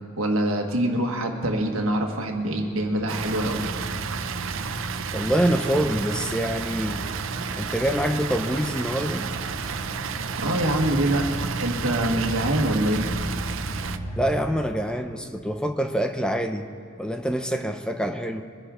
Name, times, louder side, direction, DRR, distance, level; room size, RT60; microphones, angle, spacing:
voice 1, 0.2-3.7 10.4-13.1, right 1 dB, 85° right, 3 dB, 1.6 m, -25 dB
Car / Idling, 2.4-15.1, right 1 dB, 20° left, 1.7 m, -34 dB
Water, 3.1-14.0, right 7 dB, 65° right, 0.6 m, -33 dB
voice 2, 5.1-7.1 7.6-9.3 14.2-16.7 17.0-18.4, equal, 5° left, 6 dB, 0.5 m, -25 dB
23.5 x 11.0 x 3.8 m, 2.7 s
head